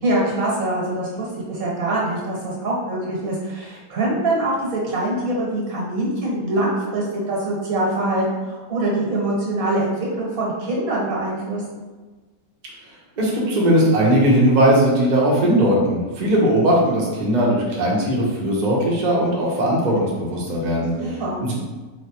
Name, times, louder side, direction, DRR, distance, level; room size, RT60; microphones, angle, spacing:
voice 1, 0.0-11.6 21.0-21.4, right 1 dB, 80° right, -4 dB, 1.7 m, -24 dB
voice 2, 13.2-21.5, right 1 dB, 40° right, -4 dB, 0.8 m, -19 dB
4.4 x 3.1 x 2.9 m, 1.3 s
omnidirectional pair, 1.5 m